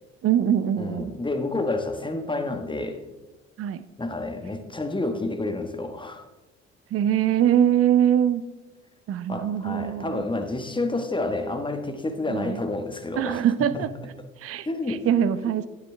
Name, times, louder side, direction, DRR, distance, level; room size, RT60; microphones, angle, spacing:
voice 1, 0.2-1.1 3.6-3.8 6.9-8.4 9.1-10.2 12.3-12.6 13.2-13.9 14.4-15.7, right 10 dB, 45° right, 14 dB, 0.6 m, -23 dB
voice 2, 0.8-3.0 4.0-6.3 9.3-13.4 13.7-13.9 14.6-15.0 15.5-15.6, left 2 dB, 15° left, 6 dB, 1.4 m, -29 dB
10.0 x 9.7 x 3.4 m, 1.1 s
figure-of-eight pair, 45°, 34 cm